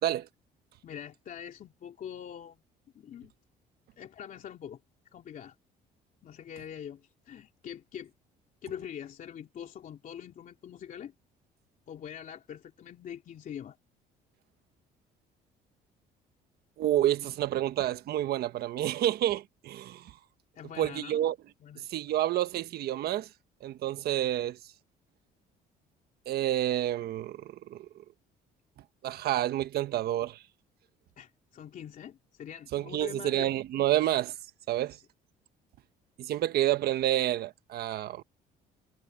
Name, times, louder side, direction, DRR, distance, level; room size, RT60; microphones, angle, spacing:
voice 1, 0.8-2.6 2.9-3.3 4.0-4.8 5.1-5.5 6.2-8.1 8.6-11.1 11.9-13.8 20.5-21.3 21.6-21.8 31.2-33.5, left 9 dB, 50° left, 3.1 m, -43 dB
voice 2, 16.8-20.1 20.8-21.3 21.8-23.3 23.6-24.6 26.3-27.9 29.0-30.4 32.7-34.3 34.7-35.0 36.2-38.2, right 13 dB, 70° right, 1.3 m, -29 dB
cardioid pair, 110°, 17 cm